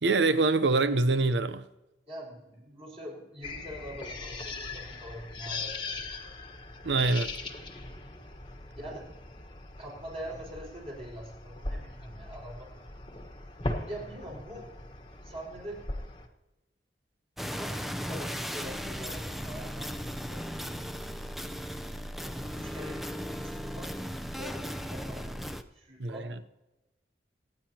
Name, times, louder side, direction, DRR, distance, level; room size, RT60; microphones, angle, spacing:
voice 1, 0.0-1.6 6.8-7.3 26.0-26.3, right 3 dB, 85° right, 0.8 m, -25 dB
voice 2, 2.1-6.3 8.7-9.1 9.8-12.7 13.6-14.7 15.2-15.8 17.6-20.4 22.3-23.0 23.4-24.0 24.4-25.4 25.7-26.5, equal, 35° right, 5.5 m, -44 dB
sound 1, 3.4-16.3, left 2 dB, 25° left, 1.3 m, -40 dB
sound 2, 17.4-25.6, equal, ahead, 0.6 m, -36 dB
25.5 x 9.8 x 2.9 m
head